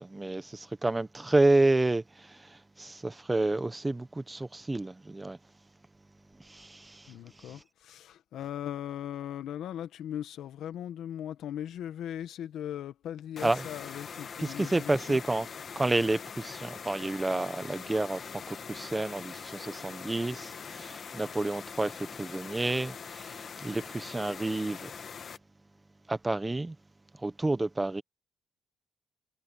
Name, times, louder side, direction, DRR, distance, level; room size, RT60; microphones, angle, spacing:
voice 1, 0.0-5.4 6.5-7.1 7.5-7.6 13.4-13.6 14.4-15.5 15.7-24.9 26.1-26.7 27.2-28.0, right 2 dB, 15° right, 1.1 m, -30 dB
voice 2, 7.1-15.2, left 10 dB, 75° left, 1.8 m, -39 dB
sound 1, 13.4-25.4, left 6 dB, 50° left, 1.5 m, -43 dB
cardioid pair, 90°, 0 cm